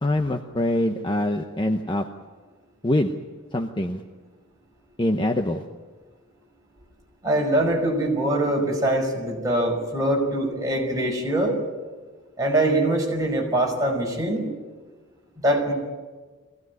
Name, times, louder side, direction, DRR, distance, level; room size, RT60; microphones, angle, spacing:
voice 1, 0.0-2.1 2.8-3.1 3.5-4.0 5.0-5.6, left 1 dB, 20° left, 4 dB, 0.9 m, -24 dB
voice 2, 7.2-11.6 12.4-14.5 15.4-15.7, right 1 dB, 15° right, -1 dB, 5.3 m, -23 dB
23.0 x 17.0 x 9.5 m, 1.4 s
head